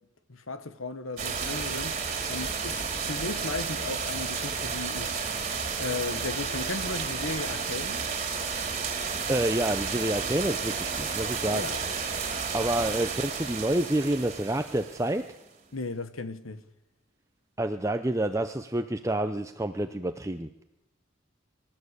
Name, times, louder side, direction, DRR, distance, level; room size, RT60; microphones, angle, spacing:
voice 1, 0.3-2.0 2.3-5.2 5.8-8.0 11.5-11.9 12.8-12.9 15.7-16.6, left 3 dB, 85° left, 1.4 m, -36 dB
sound 1, 1.2-15.4, right 5 dB, 30° right, 3.2 m, -32 dB
voice 2, 9.3-11.7 12.5-15.2 17.6-20.6, right 1 dB, 15° right, 0.7 m, -28 dB
24.5 x 13.0 x 8.2 m
head